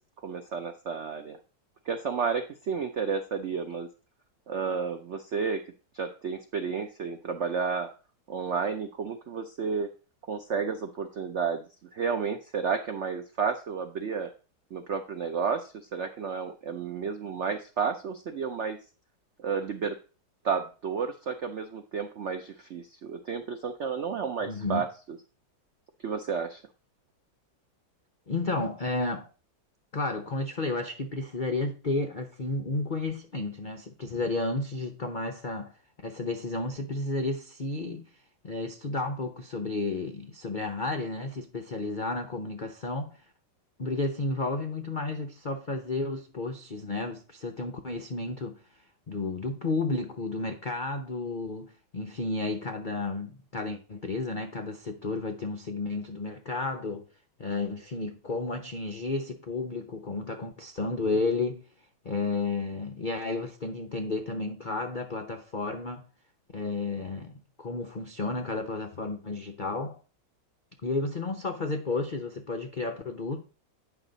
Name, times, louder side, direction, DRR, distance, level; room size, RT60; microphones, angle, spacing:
voice 1, 0.2-1.4 1.9-3.9 4.5-5.6 5.9-7.9 8.3-9.9 10.3-11.7 11.9-14.3 14.7-18.8 19.4-20.0 20.4-24.9 26.0-26.6, right 6 dB, 80° right, 0.6 m, -31 dB
voice 2, 24.4-24.8 28.3-29.3 29.9-35.7 36.0-38.1 38.4-43.2 43.8-48.6 49.1-57.1 57.4-61.6 62.0-66.1 66.5-70.0 70.8-73.4, left 3 dB, 85° left, 0.4 m, -32 dB
9.0 x 5.9 x 3.9 m
omnidirectional pair, 2.1 m